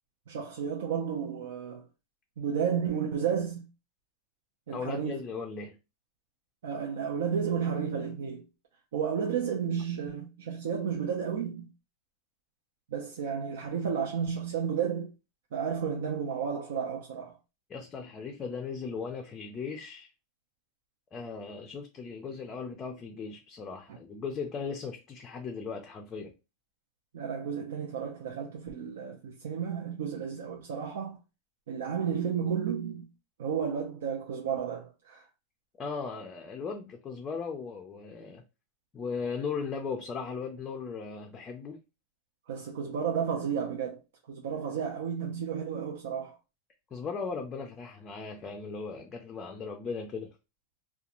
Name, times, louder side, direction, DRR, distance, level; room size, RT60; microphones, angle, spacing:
voice 1, 0.3-1.8 2.4-3.6 4.7-5.2 6.6-8.4 8.9-11.7 12.9-15.1 15.5-17.3 27.1-31.2 31.7-33.1 33.4-35.2 42.5-44.0 44.3-46.3, right 7 dB, 85° right, 0.6 m, -32 dB
voice 2, 4.7-5.8 17.7-20.1 21.1-26.3 35.7-38.4 38.9-41.8 46.9-50.3, left 5 dB, 20° left, 0.4 m, -37 dB
2.4 x 2.3 x 2.9 m
supercardioid pair, 160°, 0 cm